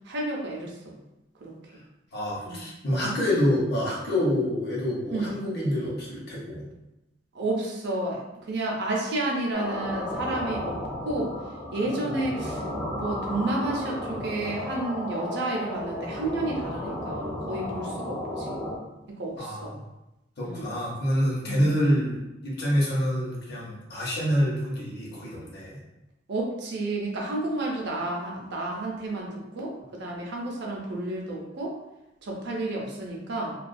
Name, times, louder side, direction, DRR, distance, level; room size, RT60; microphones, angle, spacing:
voice 1, 0.0-1.0 1.4-1.8 2.4-2.7 5.1-5.3 7.3-11.3 11.7-12.6 13.0-18.6 19.1-19.7 20.4-20.7 21.5-21.7 26.3-31.8 32.2-33.6, right 2 dB, 60° right, -1 dB, 0.5 m, -31 dB
voice 2, 2.1-6.6 19.4-19.8 20.4-25.8, equal, 55° left, -5 dB, 0.8 m, -27 dB
sound 1, 9.5-18.8, left 1 dB, 5° left, 0.4 m, -33 dB
2.3 x 2.2 x 2.5 m, 0.94 s
head